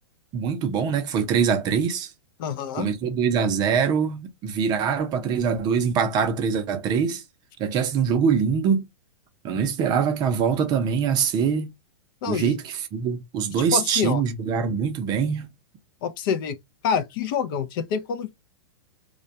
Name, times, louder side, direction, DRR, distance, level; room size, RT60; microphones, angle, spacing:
voice 1, 0.3-2.1 2.7-7.2 7.6-8.9 9.4-11.7 12.3-15.5, right 6 dB, 30° right, 0.5 m, -23 dB
voice 2, 2.4-2.9 12.2-12.5 13.7-14.2 16.0-16.6 16.8-18.3, left 7 dB, 50° left, 0.4 m, -26 dB
2.2 x 2.2 x 2.5 m
hypercardioid pair, 135°, 14 cm